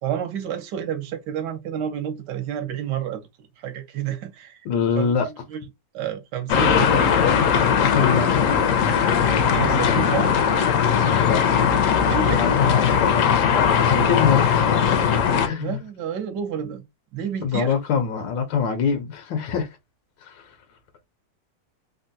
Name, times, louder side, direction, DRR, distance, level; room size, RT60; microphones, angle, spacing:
voice 1, 0.0-4.6 5.0-5.6 5.9-7.1 9.5-10.4 12.0-12.4 15.6-16.8 17.1-17.7, right 9 dB, 70° right, 1.4 m, -30 dB
voice 2, 4.7-5.3 7.9-8.4 11.2-11.4 12.4-14.8 15.4-15.8 17.4-19.7 20.2-20.6, left 6 dB, 90° left, 1.4 m, -24 dB
sound 1, 6.5-15.5, left 7 dB, 70° left, 0.7 m, -19 dB
3.5 x 2.2 x 2.6 m
omnidirectional pair, 2.0 m